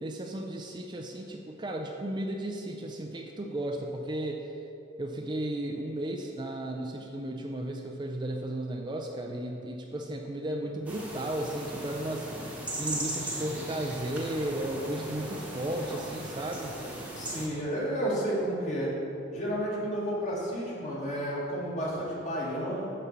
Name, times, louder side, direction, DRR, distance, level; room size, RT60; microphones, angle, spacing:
voice 1, 0.0-4.5 5.0-12.5 12.8-16.8, right 1 dB, 25° right, 2 dB, 0.4 m, -34 dB
sound 1, 10.9-17.5, right 1 dB, 5° right, 1.1 m, -38 dB
voice 2, 17.2-18.9 19.3-22.9, equal, 40° left, -6 dB, 2.0 m, -31 dB
9.2 x 4.3 x 6.7 m, 2.9 s
head